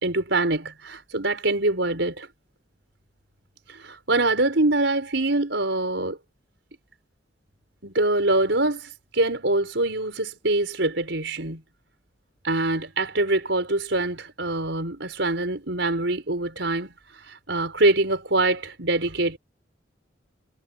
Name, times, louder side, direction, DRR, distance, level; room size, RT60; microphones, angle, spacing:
voice 1, 0.0-2.3 3.7-6.2 7.8-11.6 12.4-19.4, right 2 dB, 70° right, 4.9 m, -24 dB
head